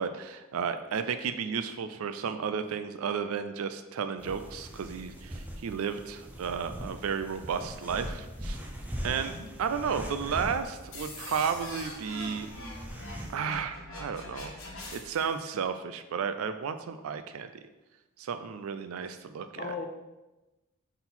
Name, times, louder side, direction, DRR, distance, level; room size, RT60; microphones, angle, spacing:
voice 1, 0.0-8.6 9.0-9.3 9.6-12.5 13.3-14.5 14.9-17.5 18.2-19.7, right 6 dB, 80° right, 9 dB, 0.4 m, -33 dB
sound 1, 4.2-13.3, equal, 10° right, 0.6 m, -41 dB
voice 2, 9.0-9.5 19.6-19.9, left 4 dB, 40° left, 4 dB, 0.5 m, -38 dB
sound 2, 10.9-15.3, left 2 dB, 65° left, 1.4 m, -43 dB
4.4 x 4.0 x 5.5 m, 1.1 s
head